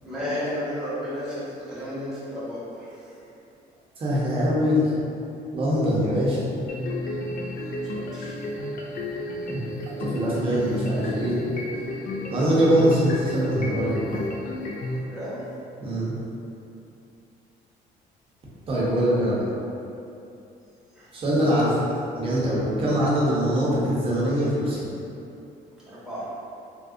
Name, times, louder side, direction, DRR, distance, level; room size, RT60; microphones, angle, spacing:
voice 1, 0.0-2.9 7.9-8.4 14.9-15.4 21.0-21.1 25.9-26.3, left 1 dB, 5° right, -11 dB, 1.0 m, -33 dB
voice 2, 4.0-4.9 5.5-6.5 10.0-11.4 12.3-14.2 15.8-16.1 18.7-19.5 21.1-21.8 22.1-24.9, equal, 35° right, -7 dB, 0.8 m, -23 dB
sound 1, 6.7-15.0, left 2 dB, 55° left, 0.4 m, -32 dB
3.4 x 2.6 x 2.5 m, 2.7 s
cardioid pair, 145°, 17 cm